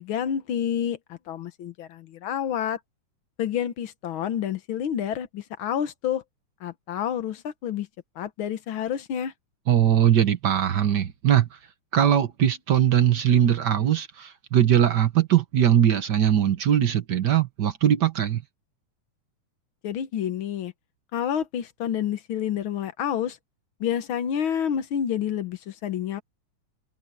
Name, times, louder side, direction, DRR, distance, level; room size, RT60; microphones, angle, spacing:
voice 1, 0.0-2.8 3.4-6.2 6.6-7.9 8.1-9.3 19.8-20.7 21.1-23.4 23.8-26.2, left 9 dB, 65° left, 1.3 m, -29 dB
voice 2, 9.7-11.5 11.9-18.4, right 10 dB, 80° right, 0.9 m, -21 dB
omnidirectional pair, 3.6 m